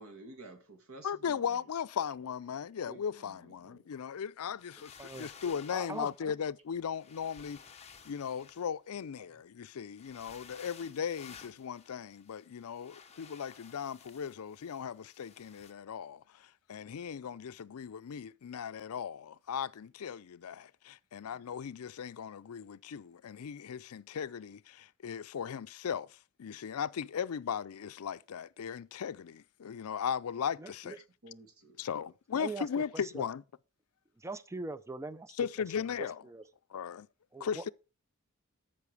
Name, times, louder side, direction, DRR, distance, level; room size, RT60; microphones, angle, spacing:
voice 1, 0.0-1.4 2.8-3.8 17.2-17.3 21.3-21.5 31.2-31.9, right 2 dB, 70° right, 2.2 m, -52 dB
voice 2, 1.0-7.6 8.1-30.9 31.8-33.4 35.4-36.2 36.7-37.1 37.4-37.7, left 7 dB, 75° left, 0.4 m, -37 dB
sound 1, 4.6-6.2 6.9-9.1 9.9-15.7, left 6 dB, 30° left, 0.9 m, -55 dB
voice 3, 5.0-5.3 5.7-6.3 30.6-31.0 32.3-33.2 34.2-35.4 35.8-36.4 37.3-37.6, right 3 dB, 15° right, 0.4 m, -42 dB
13.5 x 5.7 x 4.7 m
head